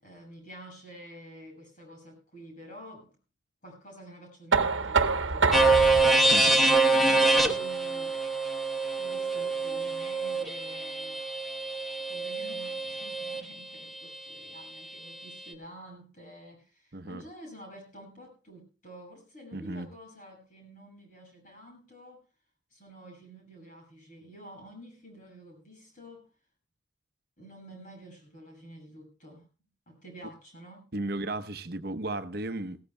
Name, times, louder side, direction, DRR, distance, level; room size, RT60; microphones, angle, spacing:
voice 1, 0.0-3.1 3.6-8.2 9.0-11.2 12.1-22.2 22.7-26.3 27.4-29.4 29.9-30.9, right 1 dB, 45° left, 6.8 m, -49 dB
Knock, 4.5-10.3, right 4 dB, 90° right, 1.1 m, -30 dB
sound 1, 5.5-13.4, right 3 dB, ahead, 1.0 m, -25 dB
voice 2, 19.5-19.9 30.9-32.8, right 2 dB, 55° right, 0.9 m, -34 dB
19.0 x 16.5 x 2.2 m
head